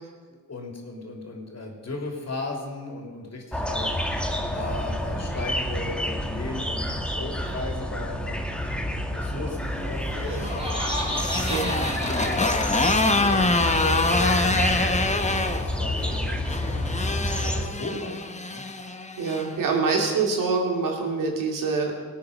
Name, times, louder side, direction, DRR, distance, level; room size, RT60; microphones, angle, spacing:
voice 1, 0.3-8.4 8.6-16.8 17.4-18.6, left 3 dB, 50° left, 1 dB, 3.4 m, -37 dB
sound 1, 3.5-17.7, equal, 5° left, 1.7 m, -29 dB
Laughter, 9.9-15.2, equal, 15° right, 4.5 m, -35 dB
Motorcycle, 10.1-19.5, left 2 dB, 20° left, 1.2 m, -26 dB
voice 2, 19.2-21.9, right 4 dB, 80° right, 1 dB, 2.6 m, -25 dB
18.5 x 8.6 x 5.4 m, 1.5 s
cardioid pair, 60°, 32 cm